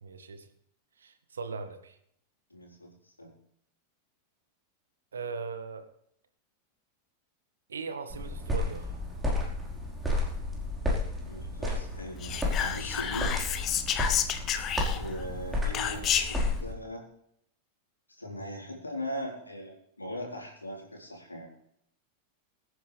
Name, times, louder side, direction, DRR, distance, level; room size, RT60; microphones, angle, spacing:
voice 1, 0.0-0.5 1.0-2.0 5.1-5.9 7.7-9.0 15.7-16.0, right 4 dB, 70° right, 8 dB, 1.6 m, -39 dB
voice 2, 2.5-3.3 11.2-13.4 14.9-17.1 18.1-21.5, left 1 dB, 80° left, -1 dB, 4.2 m, -40 dB
sound 1, 8.1-16.7, left 2 dB, 10° right, 4.6 m, -32 dB
Whispering, 12.2-15.2 15.7-16.5, left 9 dB, 30° left, 1.1 m, -30 dB
24.0 x 9.8 x 3.5 m, 0.73 s
figure-of-eight pair, 90°, 0 cm